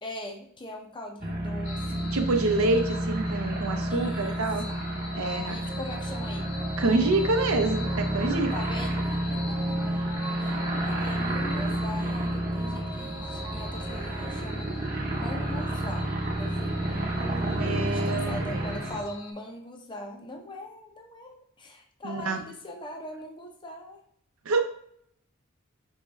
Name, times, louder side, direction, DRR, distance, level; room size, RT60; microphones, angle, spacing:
voice 1, 0.0-2.1 3.9-4.8 5.5-6.5 8.5-9.6 10.4-14.7 15.0-16.1 16.4-24.0, left 1 dB, 25° left, 2 dB, 0.5 m, -41 dB
sound 1, 1.2-19.0, right 1 dB, 45° right, 0.9 m, -30 dB
sound 2, 1.6-19.3, left 3 dB, 70° left, 0.6 m, -44 dB
voice 2, 2.1-4.7 5.1-5.6 6.8-8.5 17.4-18.8 22.0-22.4 24.5-24.6, right 2 dB, 85° right, 6 dB, 0.6 m, -27 dB
sound 3, 5.2-14.4, right 2 dB, 15° right, 0.8 m, -43 dB
5.3 x 3.1 x 2.3 m, 0.67 s
head